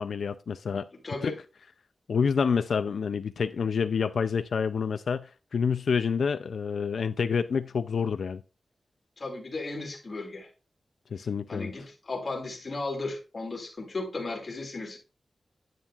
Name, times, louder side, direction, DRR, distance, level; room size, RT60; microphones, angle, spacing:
voice 1, 0.0-0.9 1.2-1.3 2.1-8.4 11.1-11.7, left 6 dB, 85° left, 0.4 m, -28 dB
voice 2, 1.0-1.4 9.2-10.5 11.5-15.0, left 3 dB, 35° left, 2.3 m, -35 dB
9.9 x 9.1 x 2.4 m
wide cardioid pair, 180°, 0 cm